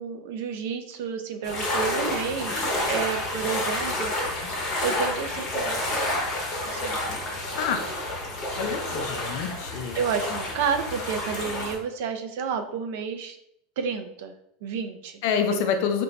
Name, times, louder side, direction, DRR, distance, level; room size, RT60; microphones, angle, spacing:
voice 1, 0.0-4.1 4.8-6.0 6.6-7.0 9.9-13.4 13.8-14.4 14.6-15.2, right 6 dB, 70° right, 7 dB, 0.4 m, -30 dB
sound 1, 1.4-11.7, left 1 dB, 30° left, 0.9 m, -29 dB
voice 2, 8.5-10.0 15.2-16.0, left 7 dB, 60° left, 6 dB, 0.5 m, -27 dB
2.6 x 2.2 x 4.0 m, 0.75 s
supercardioid pair, 155°, 0 cm